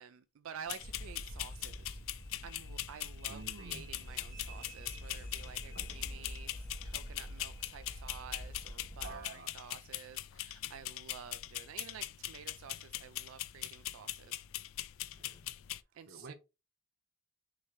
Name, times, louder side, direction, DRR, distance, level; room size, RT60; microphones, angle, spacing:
voice 1, 0.0-2.0 2.4-14.4 15.9-16.3, right 7 dB, 80° right, 0.4 m, -51 dB
sound 1, 0.7-15.8, left 15 dB, 80° left, 0.4 m, -42 dB
sound 2, 0.8-9.2, equal, 15° left, 1.6 m, -46 dB
voice 2, 3.3-3.9 5.7-5.9 9.0-9.5 15.1-15.5 16.1-16.3, right 4 dB, 55° right, 0.7 m, -49 dB
4.2 x 4.0 x 3.1 m
head